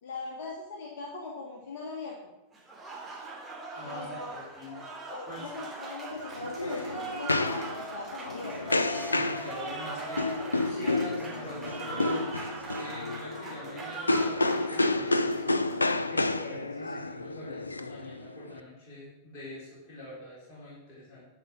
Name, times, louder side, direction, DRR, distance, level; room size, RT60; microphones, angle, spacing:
voice 1, 0.0-2.2 3.9-4.4 4.6-8.7, left 3 dB, 55° left, -1 dB, 1.9 m, -40 dB
Applause, 2.5-16.2, right 3 dB, 15° right, 2.9 m, -40 dB
voice 2, 3.7-4.8 5.3-5.5 9.1-15.5 16.1-21.2, left 1 dB, 35° left, -7 dB, 4.2 m, -44 dB
sound 1, 6.1-18.6, left 2 dB, 80° left, 0.4 m, -30 dB
11.5 x 5.7 x 6.2 m, 0.95 s
figure-of-eight pair, 90°, 0 cm